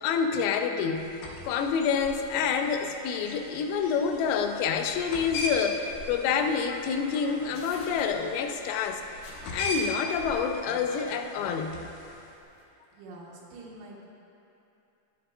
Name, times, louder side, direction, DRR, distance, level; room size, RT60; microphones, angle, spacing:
voice 1, 0.0-1.1 1.4-9.0 9.5-11.8, left 6 dB, 90° left, 5 dB, 3.2 m, -28 dB
sound 1, 1.0-12.3, left 1 dB, 75° left, 3.1 m, -39 dB
sound 2, 6.0-12.6, left 1 dB, 55° left, 3.0 m, -49 dB
voice 2, 12.9-14.1, right 2 dB, 90° right, -4 dB, 4.0 m, -46 dB
13.5 x 9.5 x 2.4 m, 2.8 s
omnidirectional pair, 5.7 m